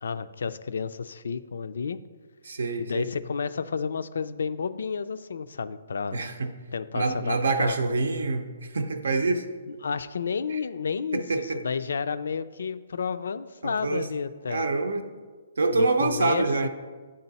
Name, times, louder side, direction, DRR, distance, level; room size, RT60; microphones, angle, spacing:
voice 1, 0.0-2.0 2.8-6.2 6.7-7.8 9.7-14.6 15.7-16.7, left 5 dB, 75° left, 13 dB, 0.3 m, -31 dB
voice 2, 2.4-3.1 6.1-6.5 6.9-9.4 10.5-10.6 11.1-11.6 13.6-14.1 14.5-15.0 15.6-16.7, right 3 dB, 80° right, 8 dB, 0.6 m, -26 dB
8.7 x 3.8 x 4.1 m, 1.4 s
hypercardioid pair, 140°, 0 cm